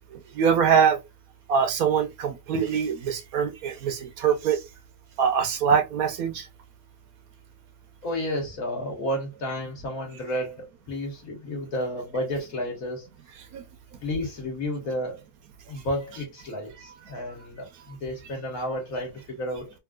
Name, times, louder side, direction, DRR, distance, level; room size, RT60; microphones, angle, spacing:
voice 1, 0.1-1.0 1.5-4.6 5.2-6.5 13.5-13.6, right 7 dB, 70° right, 1.1 m, -23 dB
voice 2, 8.0-13.1 14.0-15.2 15.7-19.7, left 1 dB, 65° left, 1.8 m, -31 dB
3.7 x 2.6 x 2.3 m
omnidirectional pair, 1.6 m